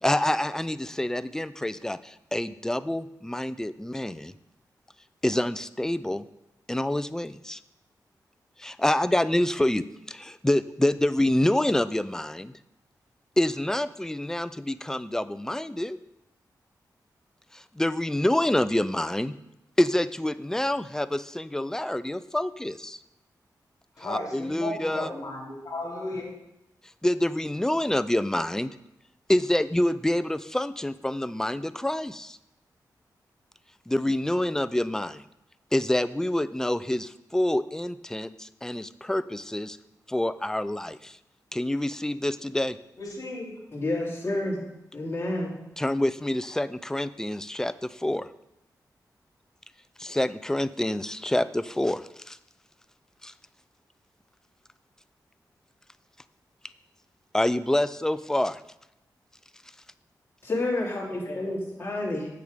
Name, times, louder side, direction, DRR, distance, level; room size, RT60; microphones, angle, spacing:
voice 1, 0.0-4.3 5.2-6.2 6.7-7.6 8.6-12.5 13.4-16.0 17.5-19.3 19.8-23.0 24.0-25.1 27.0-28.7 29.3-32.4 33.9-35.2 35.7-39.8 40.1-41.2 41.5-42.8 45.8-48.3 50.0-52.4 53.2-53.3 57.3-58.6, left 1 dB, 5° left, 14 dB, 0.4 m, -27 dB
voice 2, 24.0-26.3 43.0-43.5, left 2 dB, 55° left, -3 dB, 2.9 m, -34 dB
voice 3, 43.7-44.6 44.9-45.5 60.4-62.3, left 2 dB, 30° left, -4 dB, 2.9 m, -29 dB
7.9 x 6.8 x 5.2 m, 0.86 s
cardioid pair, 70°, 7 cm